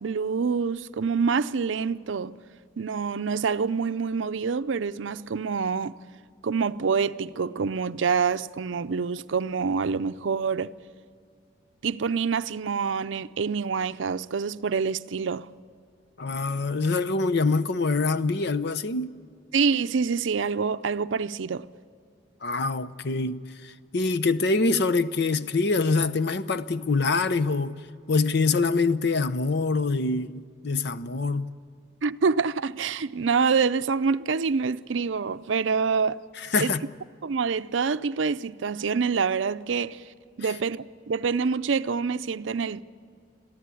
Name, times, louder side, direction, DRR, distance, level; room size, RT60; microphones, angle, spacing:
voice 1, 0.0-2.3 2.8-6.0 6.4-10.7 11.8-15.5 19.5-21.7 32.0-36.2 36.6-36.7 37.2-40.0 40.4-42.8, right 5 dB, 70° right, 0.5 m, -26 dB
voice 2, 16.2-19.1 22.4-27.8 28.1-31.5 36.4-36.8, left 3 dB, 60° left, 0.7 m, -25 dB
23.0 x 15.0 x 8.4 m
head